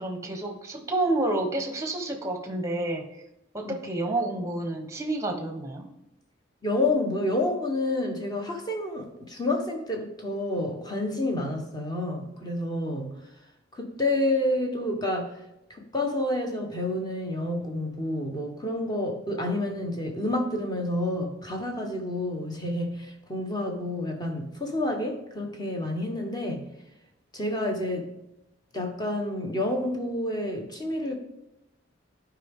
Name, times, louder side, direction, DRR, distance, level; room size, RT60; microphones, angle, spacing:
voice 1, 0.0-3.0 3.5-5.9, right 2 dB, 15° right, 5 dB, 1.0 m, -29 dB
voice 2, 6.6-13.1 13.7-15.3 15.9-26.7 27.3-28.1 28.7-31.1, left 1 dB, 20° left, 2 dB, 1.2 m, -29 dB
11.0 x 4.9 x 3.6 m, 0.89 s
head